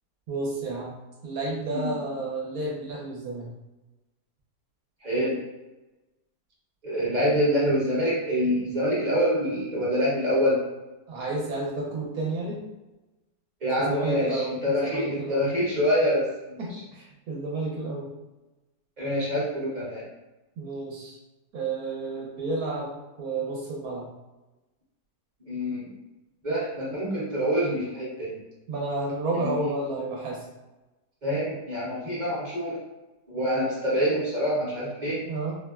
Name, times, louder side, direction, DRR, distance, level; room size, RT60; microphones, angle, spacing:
voice 1, 0.3-0.9 1.2-3.5 11.1-12.6 13.8-15.5 16.6-18.1 20.6-21.2 21.5-22.9 23.2-24.0 28.7-30.4 35.2-35.5, right 2 dB, 70° right, -3 dB, 1.0 m, -31 dB
voice 2, 5.0-5.4 6.8-10.6 13.6-16.6 19.0-20.0 25.5-25.9 26.4-28.4 29.3-29.7 31.2-32.8 33.3-35.2, equal, 35° right, -7 dB, 0.8 m, -26 dB
4.0 x 2.0 x 2.3 m, 1.1 s
omnidirectional pair, 1.8 m